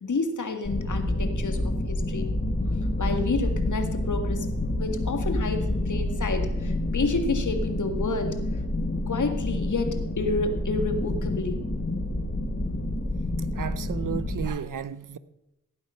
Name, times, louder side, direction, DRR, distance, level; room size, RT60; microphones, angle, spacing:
voice 1, 0.0-2.3 2.7-8.3 9.1-11.6, left 3 dB, 70° left, 2.0 m, -30 dB
sound 1, 0.6-14.5, left 1 dB, 30° left, 2.0 m, -28 dB
voice 2, 13.5-15.2, right 8 dB, 75° right, 0.8 m, -33 dB
17.0 x 8.7 x 5.8 m
cardioid pair, 45°, 32 cm